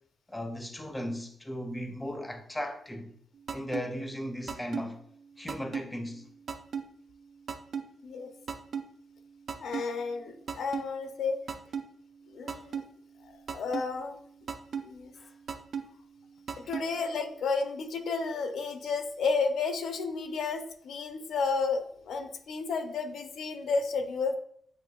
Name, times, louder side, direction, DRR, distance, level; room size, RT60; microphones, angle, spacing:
voice 1, 0.3-3.2 3.5-5.0 5.4-6.3 12.5-12.6 15.2-15.3 16.6-16.7, equal, 10° left, 0.5 m, -37 dB
sound 1, 3.5-3.8 4.5-4.8 5.5-5.8 6.5-6.8 7.5-7.8 8.5-8.8 9.5-9.8 10.5-10.8 11.5-11.8 12.5-12.8 13.5-13.8 14.5-14.8 15.5-15.8 16.5-16.8, right 6 dB, 55° right, 0.5 m, -33 dB
voice 2, 9.6-11.4 12.3-12.8 13.2-14.2 14.9-15.1 16.7-24.4, left 4 dB, 75° left, 0.6 m, -32 dB
7.8 x 2.9 x 2.3 m
wide cardioid pair, 160°, 0 cm